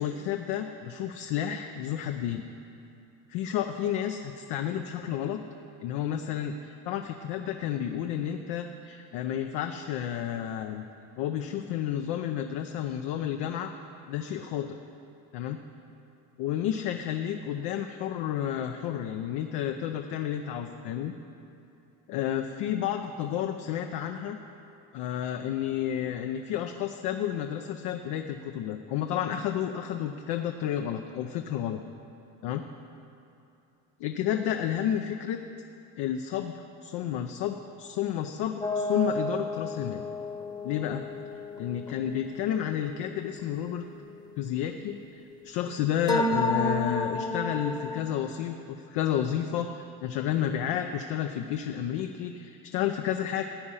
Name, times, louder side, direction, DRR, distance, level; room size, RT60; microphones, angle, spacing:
voice 1, 0.0-2.4 3.3-5.4 5.8-10.8 11.2-13.7 14.1-14.8 15.3-15.6 16.4-21.1 22.1-24.4 24.9-31.8 32.4-32.6 34.0-35.4 36.0-36.5 36.8-40.0 40.6-41.0 41.6-43.8 44.4-53.4, left 10 dB, 80° left, 5 dB, 0.7 m, -31 dB
sound 1, 38.6-44.1 46.1-48.0, left 1 dB, 10° left, 0.9 m, -32 dB
14.5 x 8.8 x 5.6 m, 2.7 s
cardioid pair, 110°, 40 cm